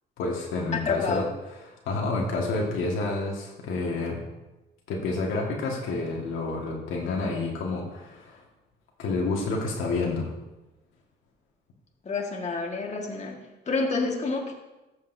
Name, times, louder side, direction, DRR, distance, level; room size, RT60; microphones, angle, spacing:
voice 1, 0.2-1.2 1.9-4.2 4.9-8.4 9.0-10.3, left 3 dB, 90° left, -1 dB, 1.7 m, -29 dB
voice 2, 0.7-1.3 12.0-13.4 13.6-14.5, left 3 dB, 35° left, 0 dB, 1.6 m, -28 dB
14.0 x 6.7 x 2.7 m, 1.0 s
cardioid pair, 90°, 20 cm